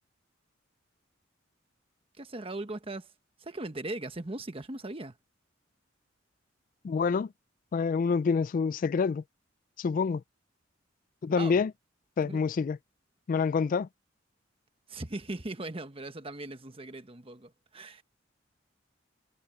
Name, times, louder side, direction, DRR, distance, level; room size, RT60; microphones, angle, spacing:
voice 1, 2.2-3.1 3.4-5.2 11.3-11.6 12.2-12.4 14.9-18.0, right 2 dB, 30° right, 1.2 m, -39 dB
voice 2, 6.8-7.3 7.7-9.2 9.8-10.2 11.2-11.7 12.2-12.8 13.3-13.9, left 5 dB, 45° left, 0.3 m, -27 dB
head